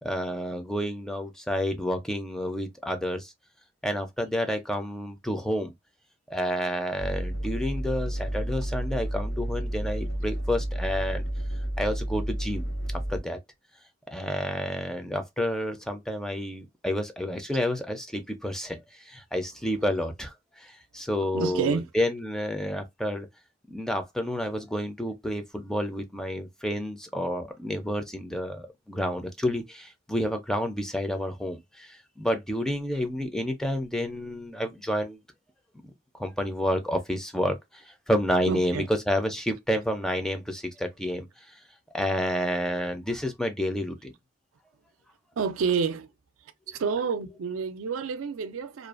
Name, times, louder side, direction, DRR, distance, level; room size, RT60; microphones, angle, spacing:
voice 1, 0.0-3.3 3.8-5.7 6.3-11.2 11.8-13.4 14.1-23.3 23.7-35.2 36.1-41.3 41.9-44.1, equal, 5° left, 0.4 m, -30 dB
sound 1, 7.0-13.2, right 1 dB, 90° left, 1.0 m, -31 dB
voice 2, 21.3-21.9 38.5-38.9 45.4-46.1 46.7-48.9, right 5 dB, 75° right, 0.4 m, -28 dB
2.5 x 2.3 x 2.4 m
head